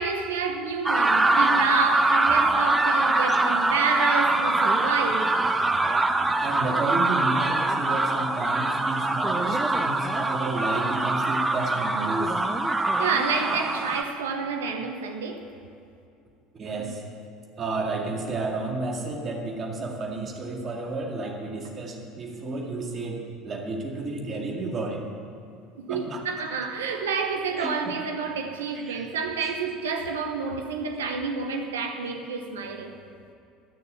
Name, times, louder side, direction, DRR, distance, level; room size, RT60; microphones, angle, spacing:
voice 1, 0.0-5.5 13.0-15.5 25.8-32.9, right 5 dB, 75° right, 1.0 m, -29 dB
sound 1, 0.9-14.0, right 2 dB, 15° right, 0.8 m, -23 dB
voice 2, 6.4-12.3 16.5-17.0 17.6-25.1 25.9-26.2 27.5-27.9 28.7-29.0, right 2 dB, 35° right, 2.1 m, -31 dB
12.0 x 6.7 x 8.7 m
figure-of-eight pair, 65°, 0 cm